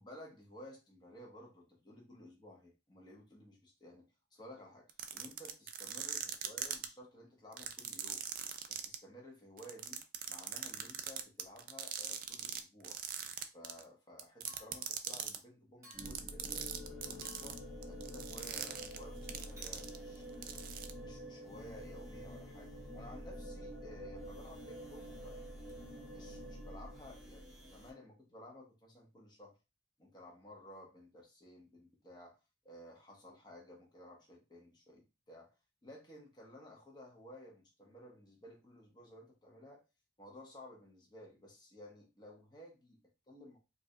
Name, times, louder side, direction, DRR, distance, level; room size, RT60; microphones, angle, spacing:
voice 1, 0.0-8.2 8.7-13.0 13.5-20.6 21.0-25.5 26.1-29.6 30.0-32.4 32.6-35.5 35.8-39.8 40.2-43.6, left 1 dB, 25° left, -1 dB, 1.0 m, -55 dB
sound 1, 4.9-6.8 7.5-9.0 9.6-12.6 12.8-13.8 14.2-15.4 15.9-20.2 20.4-20.9, right 10 dB, 50° right, 0.4 m, -40 dB
Chink clink, 14.5-15.0 15.8-16.3 17.2-17.7 18.4-18.7 19.6-19.8, left 1 dB, 15° right, 1.3 m, -58 dB
sound 2, 15.9-27.9, equal, ahead, 0.9 m, -48 dB
4.6 x 2.5 x 2.2 m, 0.28 s
head